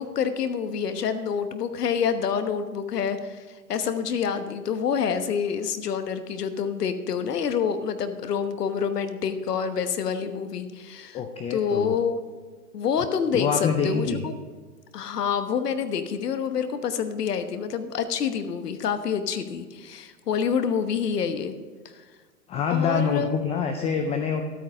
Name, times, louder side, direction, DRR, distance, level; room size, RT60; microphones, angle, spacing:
voice 1, 0.0-3.4 3.7-11.2 11.5-12.2 12.7-14.3 14.9-21.5 22.7-23.3, left 7 dB, 80° left, 10 dB, 1.2 m, -27 dB
voice 2, 11.1-11.9 13.3-14.2 22.5-24.4, left 6 dB, 15° left, 5 dB, 0.4 m, -25 dB
12.5 x 9.0 x 5.1 m, 1.5 s
hypercardioid pair, 115°, 47 cm